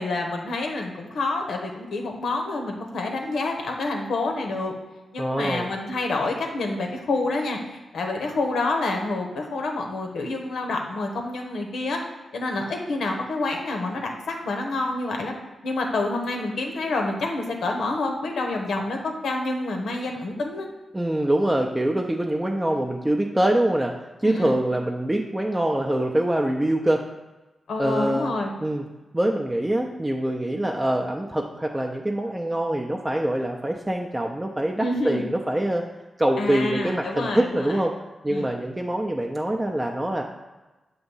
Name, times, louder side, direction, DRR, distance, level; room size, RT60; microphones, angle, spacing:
voice 1, 0.0-4.7 5.1-12.0 12.3-15.3 15.6-20.7 24.2-24.5 27.7-28.5 34.8-35.2 36.4-37.8 38.3-38.5, left 2 dB, 85° left, 2 dB, 0.9 m, -28 dB
voice 2, 5.2-5.7 20.9-23.9 24.2-27.0 27.8-28.3 28.6-28.8 29.1-35.8 36.2-37.9 38.2-40.2, right 1 dB, 15° right, 1 dB, 0.5 m, -24 dB
6.8 x 2.6 x 5.5 m, 1.1 s
cardioid pair, 80°, 0 cm